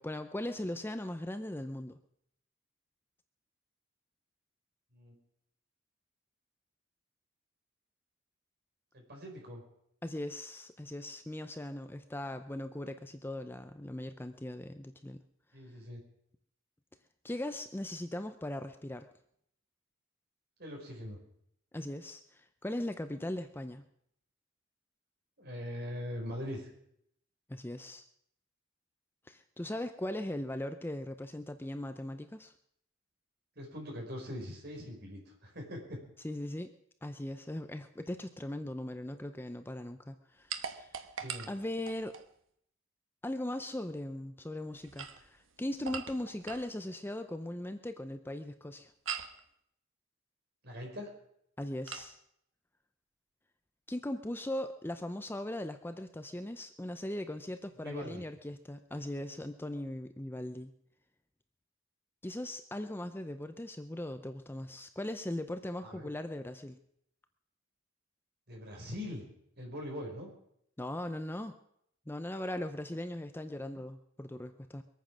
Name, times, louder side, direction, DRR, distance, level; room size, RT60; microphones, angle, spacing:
voice 1, 0.0-2.0 10.0-15.2 17.2-19.1 21.7-22.2 22.6-23.8 27.5-28.0 29.3-32.5 36.2-36.7 37.0-40.9 41.5-42.1 43.2-48.9 51.6-52.2 53.9-60.7 62.2-66.8 70.8-71.5 72.1-74.8, left 1 dB, 10° left, 9 dB, 0.5 m, -39 dB
voice 2, 8.9-9.6 15.5-16.0 20.6-21.2 25.4-26.7 33.5-36.0 41.2-41.5 50.6-51.1 57.8-58.2 65.8-66.1 68.5-69.2 69.6-70.3, equal, 50° right, 0 dB, 5.0 m, -42 dB
sound 1, 40.5-42.3 44.8-46.7 49.1-49.4 51.9-52.1, right 7 dB, 75° right, 1.1 m, -41 dB
22.5 x 9.2 x 6.2 m, 0.72 s
head